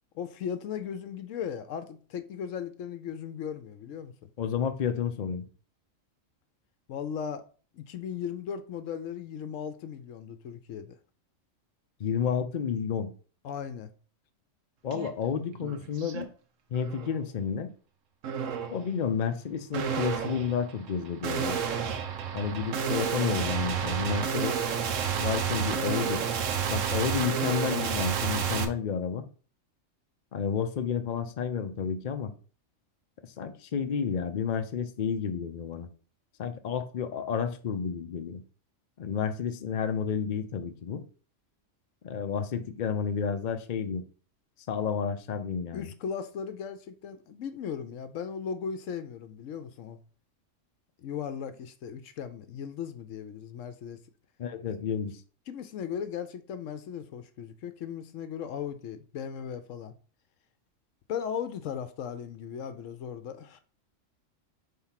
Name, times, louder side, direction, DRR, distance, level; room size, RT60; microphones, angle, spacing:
voice 1, 0.1-4.1 6.9-7.4 7.7-11.0 13.4-13.9 45.7-50.0 51.0-54.0 54.7-54.8 55.5-59.9 61.1-63.6, left 7 dB, 75° left, 1.0 m, -37 dB
voice 2, 4.4-5.5 12.0-13.1 14.8-16.3 16.7-17.7 18.7-21.6 22.3-24.7 25.2-26.2 26.7-29.2 30.3-32.3 33.4-35.9 36.4-38.4 39.0-41.0 42.0-44.0 44.7-45.9 54.4-55.2, left 7 dB, 50° left, 0.6 m, -31 dB
sound 1, 14.9-15.1 15.5-16.2 16.7-17.2 18.2-18.8 19.7-28.6, right 7 dB, 75° right, 1.1 m, -30 dB
4.6 x 3.8 x 5.6 m
omnidirectional pair, 1.3 m